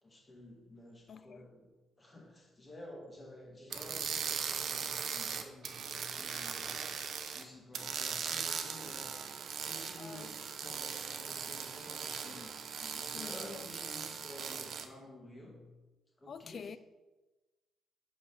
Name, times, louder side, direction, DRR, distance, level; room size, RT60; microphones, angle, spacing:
voice 1, 0.0-6.9 7.3-9.2 9.5-12.6 12.9-15.7 16.2-16.7, left 1 dB, 25° left, 2.3 m, -52 dB
voice 2, 1.1-1.5 10.0-10.3 12.3-13.7 16.3-16.8, left 6 dB, 50° left, 0.4 m, -48 dB
sound 1, 3.7-7.4 7.7-14.8, right 7 dB, 65° right, 0.7 m, -39 dB
5.8 x 5.2 x 5.9 m
cardioid pair, 90°, 0 cm